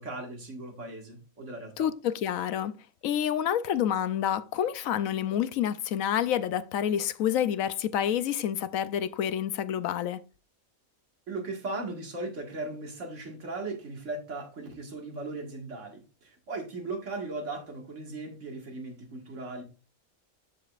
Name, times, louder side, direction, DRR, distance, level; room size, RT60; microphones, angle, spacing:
voice 1, 0.0-1.9 11.3-19.6, right 2 dB, 60° right, 2.1 m, -37 dB
voice 2, 1.8-2.7 3.0-10.2, left 10 dB, 80° left, 1.0 m, -28 dB
13.5 x 5.0 x 2.4 m
omnidirectional pair, 1.4 m